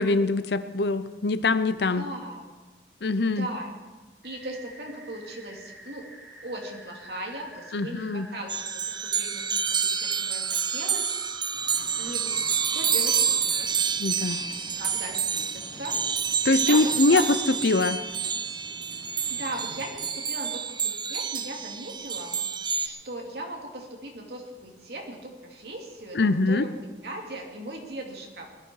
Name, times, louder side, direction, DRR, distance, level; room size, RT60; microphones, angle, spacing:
voice 1, 0.0-2.1 3.0-3.5 7.7-8.3 14.0-14.4 16.4-17.4 17.6-18.0 26.1-26.7, left 3 dB, 70° left, 13 dB, 0.7 m, -23 dB
voice 2, 1.9-2.4 3.3-3.7 4.2-6.1 6.4-11.2 11.7-14.4 14.8-16.0 16.6-17.3 19.3-22.4 22.8-28.5, right 1 dB, 65° right, 1 dB, 2.8 m, -38 dB
sound 1, 4.2-13.4, right 1 dB, ahead, 2.8 m, -47 dB
sound 2, 8.5-22.9, right 6 dB, 25° right, 0.6 m, -28 dB
sound 3, 11.5-20.0, left 1 dB, 30° left, 6.5 m, -49 dB
19.5 x 12.0 x 4.7 m, 1.2 s
head